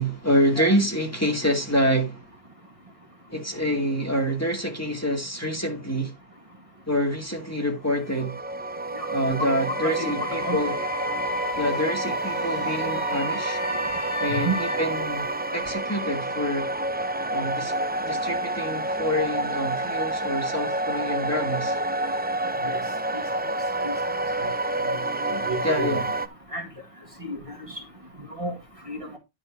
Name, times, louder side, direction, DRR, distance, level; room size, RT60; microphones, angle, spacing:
voice 1, 0.0-2.3 3.3-6.1 6.9-8.4 9.1-10.7 11.6-13.6 14.2-15.3 15.5-16.7 17.3-17.7 18.0-21.8 25.6-26.1, equal, 15° left, 2.2 m, -26 dB
sound 1, 8.1-26.3, right 2 dB, 15° right, 0.3 m, -28 dB
voice 2, 9.0-10.6 14.4-14.6 22.6-22.8 23.1-23.2 23.8-23.9 24.4-24.5 25.3-25.9 26.5-26.7 27.2-27.6 28.4-28.5 28.9-29.2, right 1 dB, 30° right, 2.1 m, -31 dB
Wind instrument woodwind instrument, 9.7-14.8, left 5 dB, 85° left, 1.6 m, -35 dB
11.0 x 4.4 x 5.1 m
omnidirectional pair, 1.1 m